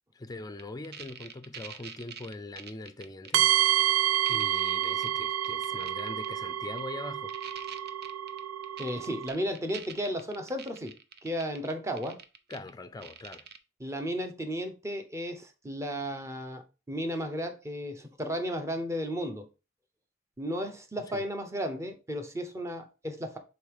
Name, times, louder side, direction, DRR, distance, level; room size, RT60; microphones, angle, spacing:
voice 1, 0.1-3.5 3.8-4.0 4.3-7.3 12.5-13.5 21.0-21.2, left 2 dB, 20° left, 0.5 m, -42 dB
sound 1, 0.6-3.4 3.7-3.8 4.1-5.1 5.4-6.3 6.8-6.9 7.3-12.7 13.0-13.6, right 7 dB, 55° right, 0.7 m, -45 dB
sound 2, 3.3-9.3, right 11 dB, 85° right, 0.4 m, -28 dB
voice 2, 8.8-10.9 11.2-12.2 13.8-19.5 20.4-23.4, equal, 15° right, 0.9 m, -34 dB
5.4 x 4.2 x 4.8 m
head